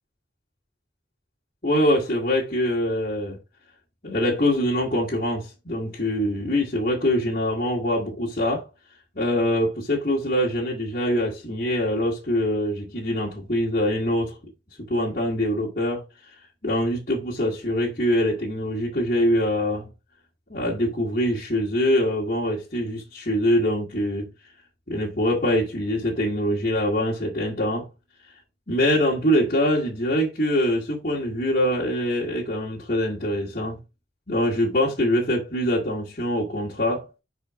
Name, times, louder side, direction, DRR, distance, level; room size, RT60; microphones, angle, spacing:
voice 1, 1.6-3.4 4.0-8.7 9.2-14.4 14.8-16.0 16.6-19.9 20.5-24.3 24.9-27.9 28.7-33.8 34.3-37.1, equal, 50° left, 2.1 m, -24 dB
5.6 x 4.9 x 4.8 m
head